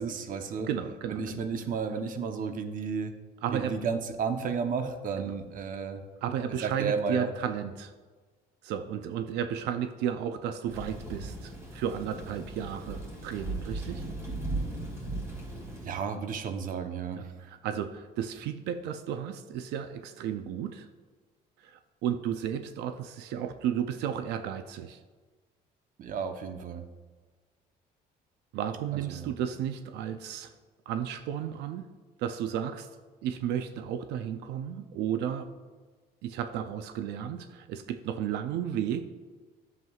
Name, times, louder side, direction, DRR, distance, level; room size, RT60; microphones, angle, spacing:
voice 1, 0.0-0.7 1.1-3.1 3.5-6.0 6.6-7.3 15.8-17.2 26.0-26.8 28.9-29.3, right 5 dB, 55° right, 7 dB, 0.8 m, -32 dB
voice 2, 0.6-1.4 3.4-3.8 5.2-5.3 6.2-7.9 8.6-14.0 17.2-20.9 21.6-25.0 28.5-30.5 30.9-31.9 32.2-32.9 33.2-35.5 36.2-39.1, right 9 dB, 85° right, 9 dB, 0.5 m, -33 dB
Thunder / Rain, 10.7-15.9, right 2 dB, 15° right, 2.5 m, -37 dB
11.0 x 7.5 x 2.4 m, 1.4 s
cardioid pair, 110°, 17 cm